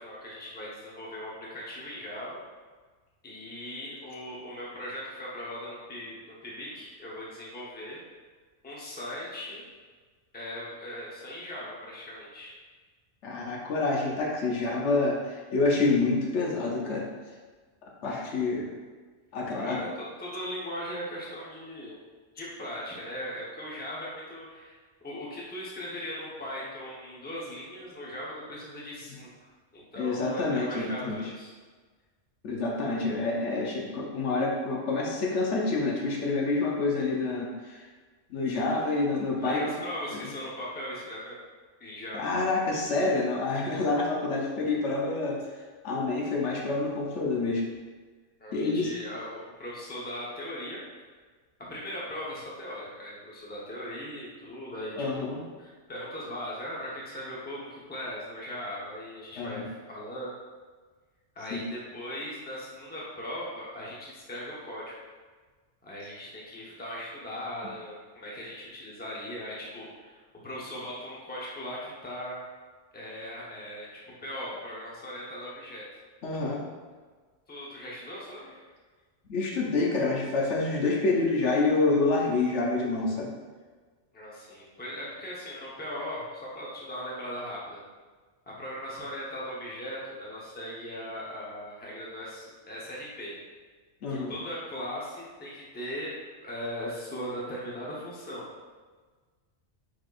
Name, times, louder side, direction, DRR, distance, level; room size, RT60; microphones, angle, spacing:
voice 1, 0.0-2.4 3.2-8.0 8.6-9.6 10.3-12.5 19.5-22.0 22.3-24.8 25.0-31.5 39.4-41.4 41.8-42.2 48.4-50.8 51.7-60.4 61.3-64.9 65.8-72.4 72.9-75.8 77.5-78.6 84.1-87.8 88.5-93.3 94.1-96.1 96.4-98.5, equal, 10° left, -6 dB, 0.7 m, -39 dB
voice 2, 13.2-17.0 18.0-18.7 19.3-19.8 30.0-31.2 32.4-37.8 38.3-39.6 40.1-40.2 42.1-45.4 45.8-47.6 48.5-48.9 55.0-55.4 59.4-59.6 61.5-61.7 76.2-76.6 79.3-83.3 94.0-94.3, left 3 dB, 70° left, -2 dB, 1.0 m, -27 dB
4.7 x 4.0 x 2.4 m, 1.4 s
omnidirectional pair, 1.3 m